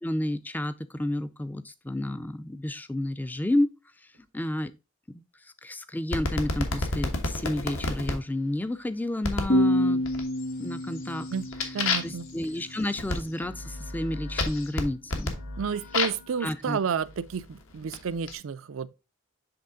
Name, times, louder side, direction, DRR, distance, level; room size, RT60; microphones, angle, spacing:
voice 1, 0.0-3.7 4.3-4.7 5.4-10.0 10.6-11.3 12.0-15.4 16.4-16.8, left 1 dB, 10° left, 0.3 m, -31 dB
sound 1, 6.1-8.2 9.2-9.6 10.0-10.5 10.9-16.3 17.1-18.3, left 3 dB, 75° left, 1.2 m, -31 dB
sound 2, 9.5-12.9, equal, 50° left, 1.6 m, -27 dB
voice 2, 11.7-12.3 15.6-18.9, right 6 dB, 70° right, 0.4 m, -31 dB
7.8 x 3.4 x 3.7 m
head